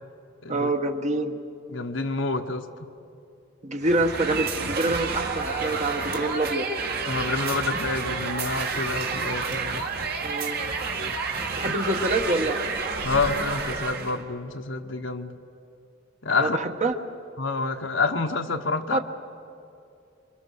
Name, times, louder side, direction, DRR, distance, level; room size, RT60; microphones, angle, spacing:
voice 1, 0.5-1.4 3.6-6.7 10.2-10.6 11.6-12.6 16.3-16.9 18.9-19.0, right 2 dB, 35° right, 6 dB, 1.3 m, -26 dB
voice 2, 1.7-2.9 7.1-9.9 11.6-11.7 13.0-15.4 16.2-16.6 17.4-19.0, left 3 dB, 75° left, 6 dB, 1.2 m, -28 dB
sound 1, 3.8-14.2, right 4 dB, 55° right, 2.0 m, -30 dB
27.0 x 25.0 x 6.4 m, 2.6 s
head